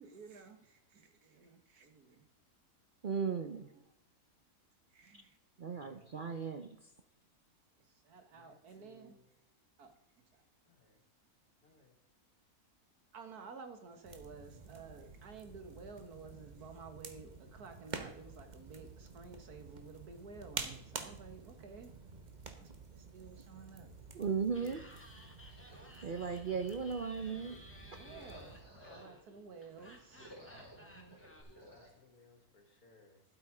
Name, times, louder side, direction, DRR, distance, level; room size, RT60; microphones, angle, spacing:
voice 1, 0.0-2.2 3.7-3.8 4.9-5.4 8.0-9.2 9.8-9.9 10.3-10.4 13.1-21.9 22.5-23.9 27.9-30.4 30.8-31.2, right 4 dB, 85° right, 1.9 m, -53 dB
voice 2, 3.0-3.7 5.6-6.8 24.1-24.8 26.0-27.6 27.9-28.0, right 6 dB, 50° right, 0.6 m, -36 dB
voice 3, 5.7-6.3 8.3-9.3 10.7-11.0 11.6-11.9 31.4-33.2, left 2 dB, 75° left, 2.5 m, -65 dB
sound 1, 14.0-28.6, right 4 dB, 35° right, 1.1 m, -49 dB
Laughter, 24.5-31.4, left 1 dB, 10° left, 1.6 m, -58 dB
sound 2, 25.5-29.3 29.7-31.9, equal, 15° right, 4.4 m, -57 dB
12.0 x 8.2 x 4.9 m
omnidirectional pair, 1.6 m